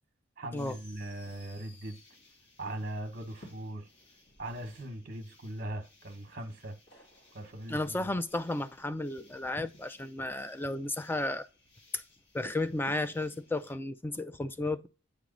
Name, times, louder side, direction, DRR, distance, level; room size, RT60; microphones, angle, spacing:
voice 1, 0.4-2.0 2.6-3.9 4.4-6.8 7.3-8.1, right 1 dB, 45° right, 0.9 m, -40 dB
sound 1, 0.6-13.7, left 1 dB, 55° left, 1.6 m, -58 dB
voice 2, 7.7-11.5 11.9-12.0 12.3-14.9, left 2 dB, 10° left, 0.3 m, -33 dB
8.3 x 3.1 x 3.8 m
head